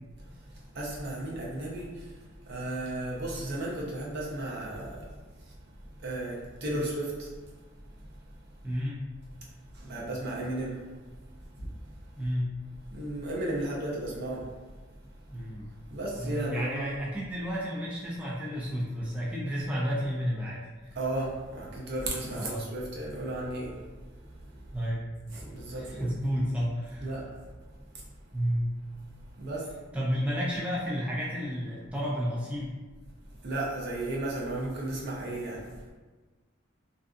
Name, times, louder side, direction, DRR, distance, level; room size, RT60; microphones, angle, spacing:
voice 1, 0.3-2.1 2.4-5.2 5.5-5.6 5.8-7.3 9.7-10.8 11.6-11.7 12.9-14.5 15.9-16.9 21.0-23.8 24.3-24.7 25.3-26.1 27.0-27.3 29.4-29.7 33.4-35.7, right 1 dB, 60° right, -4 dB, 0.6 m, -34 dB
voice 2, 8.6-9.0 12.2-12.5 15.3-15.7 16.2-21.0 22.3-22.6 24.7-25.1 25.7-27.1 28.3-28.7 29.9-32.8, equal, 5° right, -6 dB, 0.4 m, -31 dB
2.5 x 2.4 x 2.4 m, 1.3 s
head